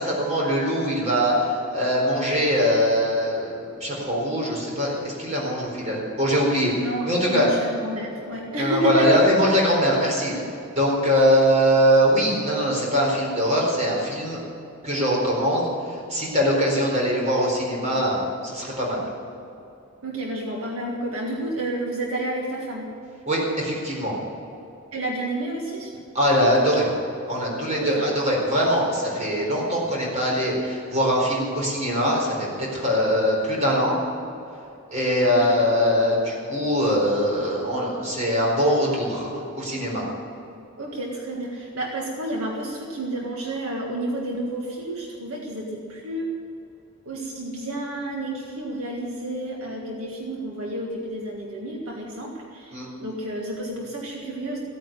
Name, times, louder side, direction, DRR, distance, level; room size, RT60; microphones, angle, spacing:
voice 1, 0.0-6.7 7.1-7.5 8.6-10.3 10.7-14.4 14.8-19.0 23.3-24.1 26.1-26.9 27.3-34.0 34.9-40.0 52.7-52.9, equal, 30° right, -3 dB, 4.5 m, -22 dB
voice 2, 6.8-9.2 10.3-10.4 11.2-11.3 20.0-22.9 24.5-24.6 24.9-25.9 27.8-28.1 35.3-35.6 40.8-46.3 47.0-54.6, right 1 dB, 75° right, -1 dB, 1.8 m, -30 dB
15.5 x 9.1 x 9.1 m, 2.7 s
head